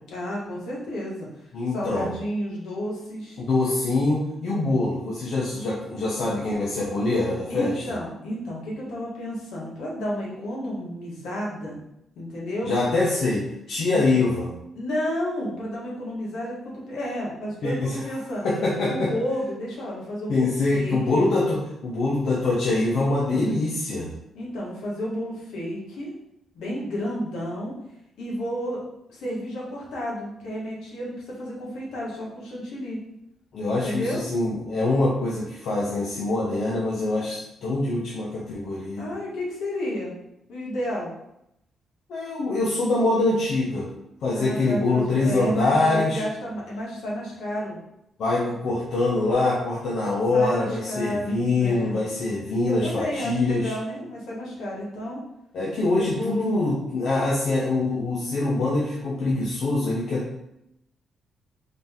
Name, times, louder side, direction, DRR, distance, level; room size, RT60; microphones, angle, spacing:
voice 1, 0.1-1.3 1.7-3.4 7.5-11.8 12.1-12.7 13.9-14.1 14.7-18.4 18.9-21.3 24.3-26.1 26.5-27.7 28.2-28.8 29.1-33.0 33.7-34.2 39.0-40.1 40.5-41.1 44.3-47.8 50.3-52.0 52.6-55.2 55.9-56.8, equal, 85° left, -4 dB, 1.3 m, -31 dB
voice 2, 1.5-2.1 3.4-8.0 12.6-14.5 17.6-18.0 18.4-19.1 20.3-24.1 33.5-39.1 42.1-43.9 44.2-46.2 48.2-53.7 55.5-60.3, left 2 dB, 70° left, -4 dB, 0.8 m, -24 dB
3.9 x 2.7 x 3.6 m, 0.82 s
cardioid pair, 90°, 0 cm